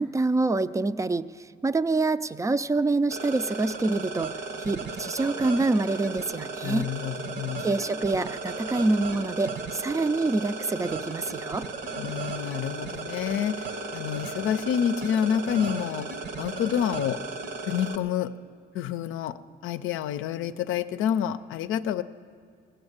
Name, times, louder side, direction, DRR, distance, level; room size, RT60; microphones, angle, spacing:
voice 1, 0.0-4.3 4.6-6.9 7.6-11.7, right 3 dB, 15° right, 14 dB, 0.4 m, -26 dB
sound 1, 3.1-17.9, right 4 dB, 60° right, 1.1 m, -35 dB
voice 2, 6.6-7.7 12.0-16.1 16.4-17.2 17.6-18.3 18.7-19.4 19.6-22.0, left 9 dB, 85° left, 11 dB, 0.5 m, -28 dB
17.0 x 7.9 x 8.0 m, 2.2 s
cardioid pair, 90°, 20 cm